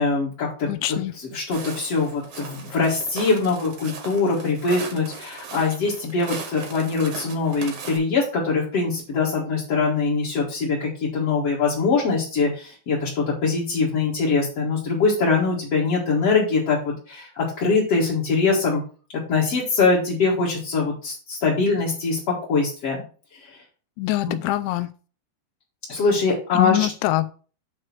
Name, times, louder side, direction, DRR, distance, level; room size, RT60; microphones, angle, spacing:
voice 1, 0.0-18.8 19.3-23.0 23.3-23.6 24.2-24.4 25.9-26.9, left 4 dB, 50° left, -6 dB, 1.8 m, -23 dB
voice 2, 0.7-1.1 24.0-24.9 26.5-27.3, left 16 dB, 85° left, 12 dB, 2.5 m, -24 dB
Walk footsteps, 1.5-8.0, right 5 dB, 75° right, 1.4 m, -38 dB
9.1 x 3.2 x 6.0 m, 0.39 s
omnidirectional pair, 5.2 m